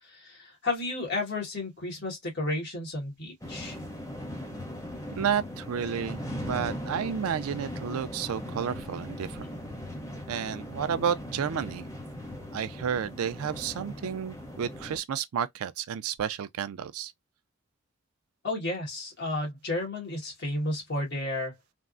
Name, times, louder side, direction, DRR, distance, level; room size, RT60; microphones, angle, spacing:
voice 1, 0.0-3.8 18.4-21.5, left 2 dB, 50° left, 1.6 m, -32 dB
sound 1, 3.4-15.0, left 1 dB, 15° left, 0.6 m, -39 dB
voice 2, 5.2-9.5 10.3-11.8 12.5-17.1, right 8 dB, 85° right, 0.4 m, -31 dB
3.5 x 2.0 x 2.4 m
head